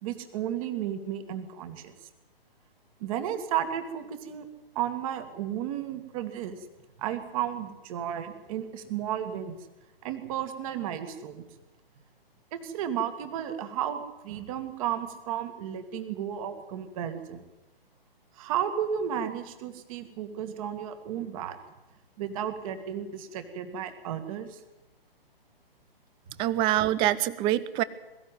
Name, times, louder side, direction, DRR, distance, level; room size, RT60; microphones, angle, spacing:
voice 1, 0.0-1.9 3.0-4.5 4.8-6.6 7.0-9.5 10.0-11.4 12.5-17.4 18.4-21.6 22.2-24.6, right 10 dB, 35° right, 8 dB, 2.4 m, -33 dB
voice 2, 26.4-27.8, right 14 dB, 15° right, 18 dB, 0.7 m, -25 dB
22.5 x 14.5 x 9.4 m, 1.0 s
figure-of-eight pair, 130°, 30 cm